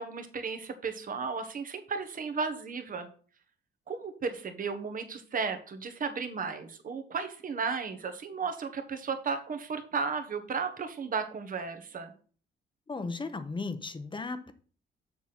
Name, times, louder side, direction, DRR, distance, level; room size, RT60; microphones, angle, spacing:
voice 1, 0.0-3.1 3.9-12.1, right 5 dB, 45° right, 1.3 m, -34 dB
voice 2, 12.9-14.5, left 3 dB, 25° left, 0.9 m, -36 dB
7.3 x 4.0 x 5.9 m
cardioid pair, 90°, 20 cm